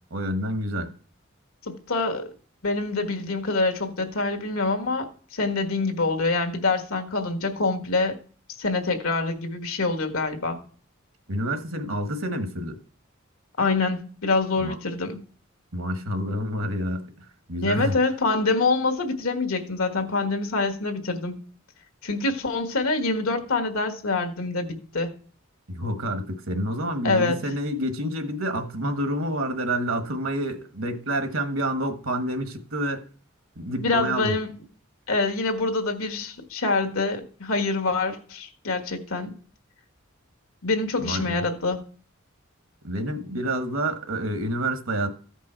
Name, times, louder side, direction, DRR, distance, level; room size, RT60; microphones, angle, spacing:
voice 1, 0.1-0.9 11.3-12.8 14.6-14.7 15.7-17.1 17.5-18.0 25.7-33.1 33.6-34.3 41.0-41.4 42.8-45.1, right 1 dB, 70° right, 1.3 m, -28 dB
voice 2, 1.7-2.3 2.6-8.2 8.6-10.6 13.6-15.2 17.6-21.4 22.0-25.1 27.0-27.4 33.8-34.5 35.1-39.3 40.6-41.8, left 3 dB, 90° left, 1.5 m, -25 dB
14.0 x 5.4 x 4.4 m
head